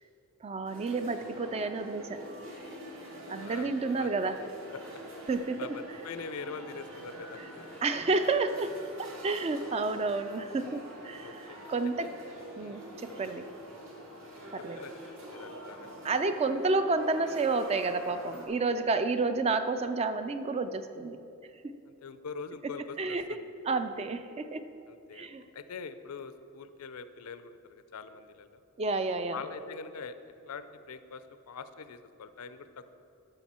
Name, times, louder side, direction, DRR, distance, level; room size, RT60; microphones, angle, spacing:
voice 1, 0.4-2.2 3.3-4.4 5.3-5.7 7.8-12.1 12.6-13.5 14.5-14.8 16.0-21.2 23.0-23.4 23.7-24.7 25.1-25.4 28.8-29.4, right 3 dB, 30° right, 10 dB, 0.3 m, -30 dB
sound 1, 0.7-18.5, equal, 60° right, 1.8 m, -46 dB
voice 2, 3.3-3.7 4.0-4.1 4.7-4.8 5.6-7.4 11.1-11.6 12.0-12.2 12.6-12.8 14.8-15.9 19.1-19.2 21.9-23.5 24.9-28.6 29.3-30.2 30.5-32.9, left 5 dB, 85° left, 11 dB, 0.5 m, -44 dB
11.5 x 6.7 x 4.2 m, 2.9 s
head